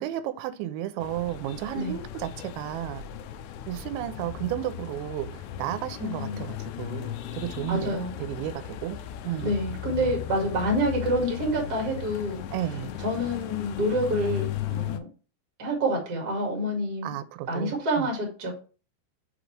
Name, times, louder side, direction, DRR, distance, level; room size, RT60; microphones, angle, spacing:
voice 1, 0.0-3.0 3.7-9.0 9.2-9.6 12.5-13.0 17.0-18.1, right 13 dB, 90° right, 2.9 m, -33 dB
sound 1, 1.0-15.0, left 11 dB, 80° left, 2.5 m, -36 dB
voice 2, 6.0-6.4 7.7-8.1 9.4-12.4 13.0-15.1 15.6-17.1 17.5-18.5, equal, 35° right, 1.6 m, -27 dB
6.5 x 5.1 x 3.3 m
omnidirectional pair, 5.1 m